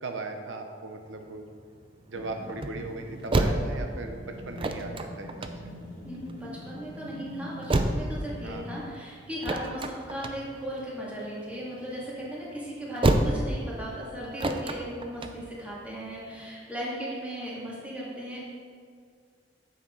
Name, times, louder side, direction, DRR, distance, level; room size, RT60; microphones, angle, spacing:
voice 1, 0.0-1.4 2.1-5.5 8.4-8.7, right 3 dB, 85° right, 4 dB, 0.7 m, -38 dB
sound 1, 1.0-16.5, right 2 dB, 30° right, 0.5 m, -31 dB
sound 2, 2.1-8.9, left 1 dB, 45° left, 1.7 m, -44 dB
voice 2, 6.0-18.4, equal, 10° right, -7 dB, 2.1 m, -37 dB
8.6 x 7.1 x 3.8 m, 2.1 s
head